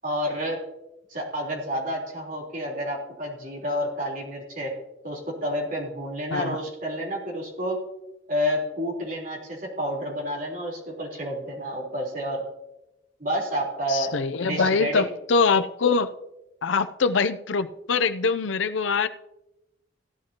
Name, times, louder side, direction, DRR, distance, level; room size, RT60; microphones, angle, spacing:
voice 1, 0.0-0.6 1.1-4.7 5.0-7.8 8.3-12.4 13.2-15.1, equal, 45° right, -2 dB, 3.8 m, -30 dB
voice 2, 13.9-16.1 16.6-19.1, left 4 dB, 85° left, 11 dB, 0.6 m, -23 dB
16.5 x 11.0 x 2.9 m, 0.92 s
head